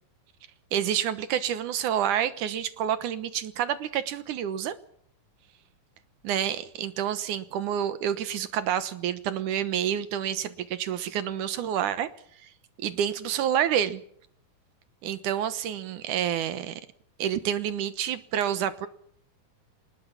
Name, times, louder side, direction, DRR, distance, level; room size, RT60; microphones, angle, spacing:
voice 1, 0.7-4.7 6.2-12.1 12.4-12.5 12.8-14.0 15.0-16.8 17.2-18.9, right 10 dB, 75° right, 2.5 m, -28 dB
22.5 x 20.0 x 7.2 m
omnidirectional pair, 3.8 m